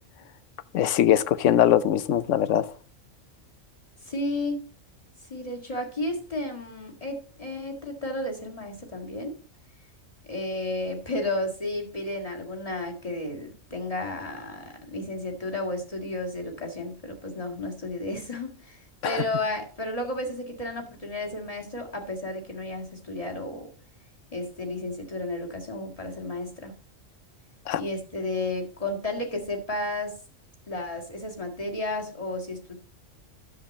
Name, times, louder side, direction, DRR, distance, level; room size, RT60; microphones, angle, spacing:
voice 1, 0.7-2.7 19.0-19.2 27.7-27.8, left 11 dB, 70° left, 1.0 m, -21 dB
voice 2, 4.0-4.6 5.3-9.3 10.3-23.7 24.3-26.7 27.8-30.2 30.7-32.8, left 2 dB, 25° left, 1.9 m, -32 dB
10.5 x 7.2 x 4.1 m
omnidirectional pair, 1.4 m